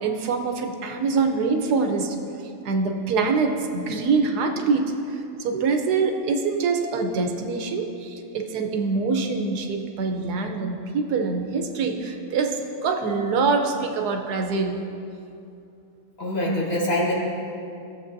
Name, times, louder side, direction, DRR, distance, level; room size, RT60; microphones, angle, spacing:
voice 1, 0.0-2.2 2.6-14.7, right 4 dB, 90° right, 4 dB, 1.3 m, -24 dB
voice 2, 16.2-17.1, left 1 dB, 40° left, -7 dB, 2.2 m, -24 dB
16.0 x 7.2 x 2.6 m, 2.7 s
omnidirectional pair, 1.6 m